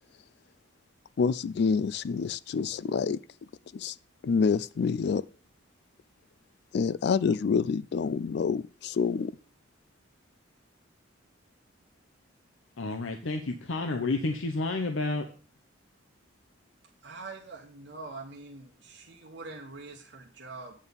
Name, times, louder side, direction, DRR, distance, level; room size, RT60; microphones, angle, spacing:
voice 1, 1.2-3.2 3.7-4.0 4.2-5.3 6.7-9.3, left 5 dB, 55° left, 0.3 m, -27 dB
voice 2, 12.8-15.3, left 3 dB, 80° left, 0.8 m, -30 dB
voice 3, 17.0-20.7, right 3 dB, 60° right, 1.1 m, -44 dB
8.8 x 4.2 x 6.9 m
head